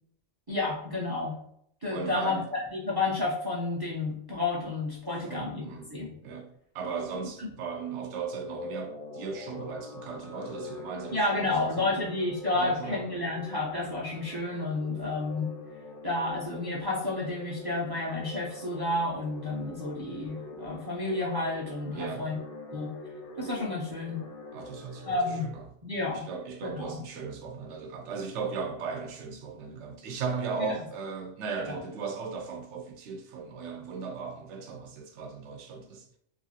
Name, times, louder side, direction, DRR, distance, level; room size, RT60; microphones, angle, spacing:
voice 1, 0.5-1.4 1.8-6.1 7.4-7.5 11.1-15.5 16.0-22.4 22.7-22.9 23.4-24.2 25.0-25.5 25.8-26.3 26.6-27.0 31.7-31.8, left 2 dB, 30° right, 0.4 m, -31 dB
voice 2, 1.9-2.5 5.2-5.9 6.2-11.9 12.5-13.0 21.9-22.3 24.5-25.2 25.4-25.6 26.1-36.0, right 5 dB, 80° right, 0.9 m, -37 dB
sound 1, 8.3-25.4, left 2 dB, 80° left, 0.9 m, -44 dB
2.9 x 2.4 x 2.7 m
omnidirectional pair, 1.2 m